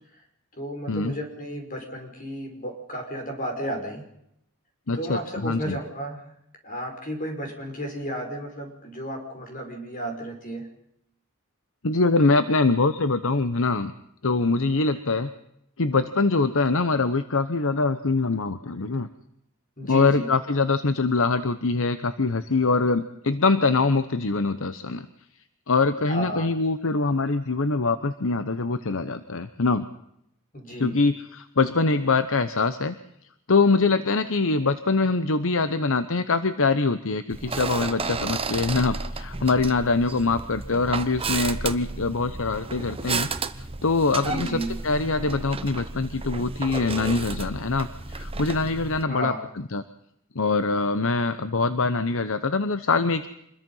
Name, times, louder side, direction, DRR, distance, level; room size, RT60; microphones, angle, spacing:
voice 1, 0.6-4.1 4.9-6.2 6.6-10.7 19.8-20.3 26.1-26.5 30.5-31.0 44.2-44.8 49.1-49.4, right 1 dB, 40° left, 3 dB, 5.4 m, -33 dB
voice 2, 4.9-5.8 11.8-13.9 14.2-15.3 15.8-19.1 19.8-25.1 25.7-29.9 30.8-32.9 33.5-43.3 43.8-49.3 49.7-49.8 50.3-53.3, left 3 dB, 65° left, 11 dB, 1.0 m, -23 dB
sound 1, 37.3-49.0, right 4 dB, 25° right, 1.0 m, -32 dB
26.5 x 21.5 x 5.6 m, 0.76 s
head